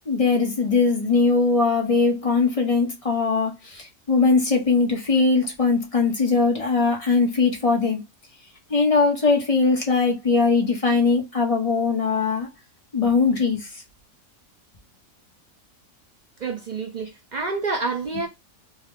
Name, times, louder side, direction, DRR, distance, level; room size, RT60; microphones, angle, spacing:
voice 1, 0.1-8.0 8.7-12.5 12.9-13.8, left 4 dB, 30° left, 0.9 m, -20 dB
voice 2, 16.4-18.3, right 4 dB, 60° right, 0.4 m, -28 dB
3.3 x 2.2 x 3.6 m
omnidirectional pair, 1.4 m